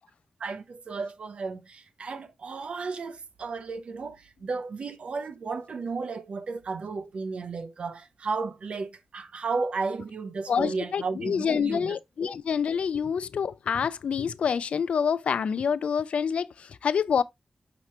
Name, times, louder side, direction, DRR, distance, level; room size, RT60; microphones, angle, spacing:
voice 1, 0.4-12.0 12.2-12.3, right 4 dB, 70° right, 0.6 m, -34 dB
voice 2, 10.5-17.2, left 7 dB, 85° left, 0.3 m, -27 dB
5.9 x 3.0 x 3.0 m
cardioid pair, 70°, 2 cm